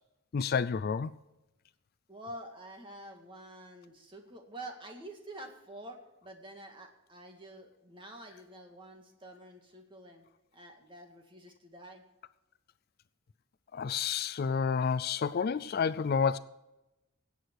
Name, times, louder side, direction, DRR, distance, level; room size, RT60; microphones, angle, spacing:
voice 1, 0.3-1.1 13.7-16.4, left 6 dB, 50° left, 0.4 m, -29 dB
voice 2, 2.1-10.3 10.5-12.0, right 1 dB, 25° right, 2.0 m, -48 dB
18.0 x 8.3 x 4.6 m
head